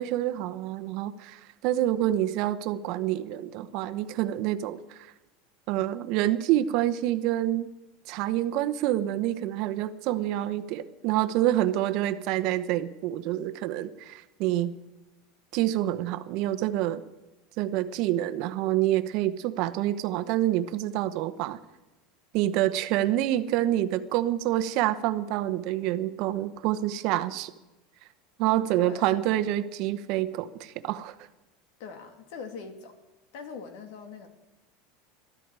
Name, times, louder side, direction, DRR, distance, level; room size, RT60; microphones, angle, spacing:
voice 1, 0.0-5.0 5.7-7.7 8.1-14.8 15.5-17.0 17.6-21.6 22.3-27.5 28.4-31.1, right 13 dB, 50° right, 11 dB, 0.9 m, -27 dB
voice 2, 28.8-29.1 31.8-33.0 33.3-34.3, left 5 dB, 65° left, 5 dB, 2.5 m, -41 dB
22.0 x 13.0 x 4.8 m, 1.0 s
supercardioid pair, 155°, 0 cm